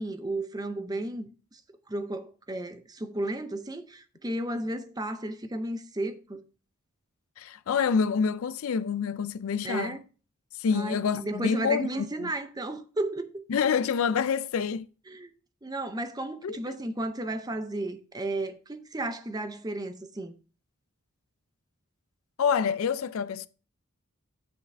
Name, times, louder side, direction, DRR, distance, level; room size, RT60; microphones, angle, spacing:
voice 1, 0.0-1.6 1.9-6.4 9.6-10.0 10.7-13.4 15.1-15.3 15.6-20.3, right 1 dB, 15° right, 0.6 m, -33 dB
voice 2, 7.4-10.0 10.5-12.3 13.5-14.9 16.4-16.6 22.4-23.5, left 6 dB, 70° left, 0.4 m, -27 dB
9.4 x 5.7 x 3.3 m
head